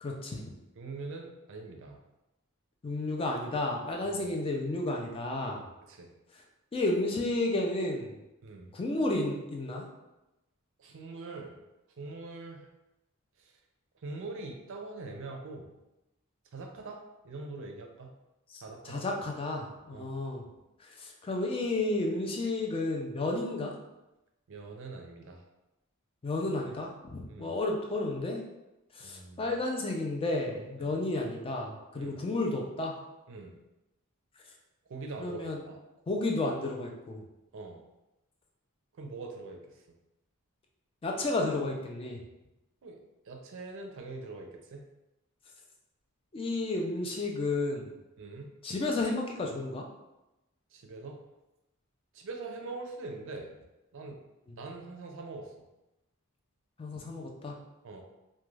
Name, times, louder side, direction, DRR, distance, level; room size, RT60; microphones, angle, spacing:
voice 1, 0.0-0.4 2.8-5.6 6.7-8.1 8.7-9.8 18.5-20.4 21.0-23.7 26.2-28.4 29.0-33.0 35.2-35.6 36.1-37.2 41.0-42.2 46.3-47.9 48.6-49.8 56.8-57.6, left 2 dB, 25° left, 1 dB, 0.3 m, -32 dB
voice 2, 0.8-2.0 4.0-4.2 5.9-6.1 8.4-8.7 10.8-11.6 12.0-12.7 13.4-13.5 14.0-15.8 16.5-18.1 18.6-19.1 19.9-20.1 24.5-25.4 27.3-27.6 29.0-29.5 30.8-31.0 32.0-32.2 33.3-33.6 34.9-35.8 37.5-37.8 39.0-39.6 42.8-43.0 43.3-44.9 48.2-48.5 50.7-51.2 52.1-53.5 53.9-54.2 54.6-55.5 57.8-58.0, right 3 dB, 60° right, 3 dB, 0.4 m, -43 dB
2.3 x 2.2 x 3.1 m, 0.96 s
head